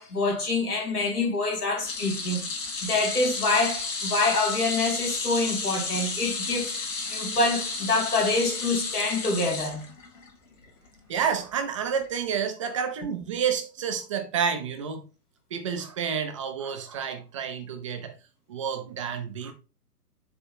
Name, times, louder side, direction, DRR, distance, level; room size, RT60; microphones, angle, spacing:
voice 1, 0.0-2.4 2.8-9.8, left 3 dB, 70° left, 2.4 m, -26 dB
sound 1, 1.8-10.3 10.6-10.9 12.1-12.2, left 4 dB, 55° left, 2.6 m, -32 dB
voice 2, 11.1-15.1 15.5-18.2 18.5-19.5, right 7 dB, 20° right, 0.6 m, -29 dB
6.8 x 3.4 x 4.5 m
figure-of-eight pair, 125°, 47 cm